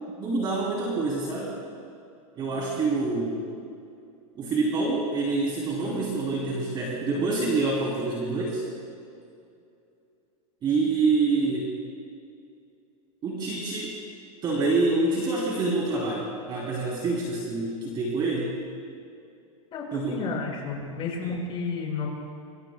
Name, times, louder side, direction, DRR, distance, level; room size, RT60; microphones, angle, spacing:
voice 1, 0.2-1.6 2.3-3.5 4.3-8.6 10.6-11.7 13.2-14.0 14.4-18.6 19.9-20.2 21.2-21.3, right 3 dB, 25° right, -4 dB, 3.1 m, -26 dB
voice 2, 19.7-22.1, left 4 dB, 30° left, -2 dB, 5.2 m, -32 dB
25.0 x 25.0 x 2.2 m, 2.5 s
supercardioid pair, 150°, 19 cm